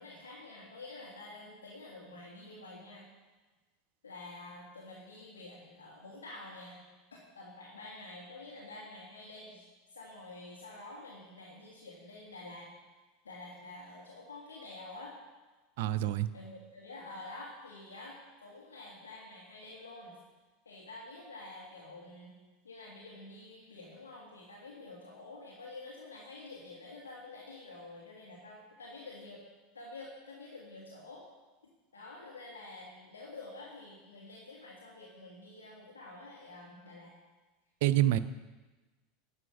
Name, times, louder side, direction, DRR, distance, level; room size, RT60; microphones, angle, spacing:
voice 1, 0.0-3.1 4.0-6.8 7.3-9.6 9.9-12.7 13.2-15.1 16.3-20.2 20.7-22.4 22.6-29.4 29.7-31.2 31.9-37.1, left 2 dB, 75° left, -4 dB, 1.9 m, -48 dB
voice 2, 15.8-16.3 37.8-38.2, right 13 dB, 60° right, 13 dB, 0.5 m, -26 dB
11.0 x 7.0 x 5.7 m, 1.2 s
figure-of-eight pair, 80°, 0 cm